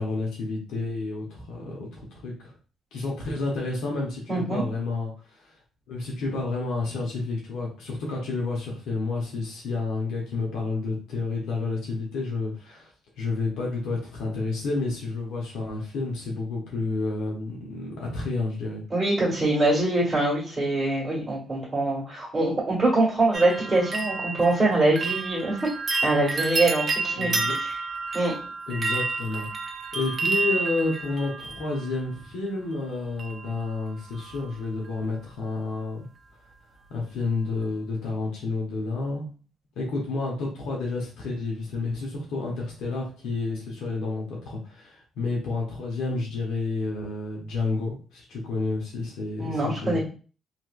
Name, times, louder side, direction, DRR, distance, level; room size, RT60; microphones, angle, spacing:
voice 1, 0.0-2.5 2.9-5.5 5.9-18.8 27.2-27.5 28.7-29.5 29.9-36.1 36.9-39.3 39.8-50.0, left 3 dB, 85° left, -2 dB, 0.9 m, -30 dB
voice 2, 4.3-4.6 18.9-25.6 26.0-27.8 28.1-28.3 49.4-50.0, right 2 dB, 20° right, -6 dB, 1.6 m, -24 dB
sound 1, 23.3-32.3 33.2-33.7 34.0-34.5 34.9-35.0, right 3 dB, 45° right, 0.5 m, -30 dB
3.1 x 2.9 x 2.4 m, 0.39 s
cardioid pair, 90°, 0 cm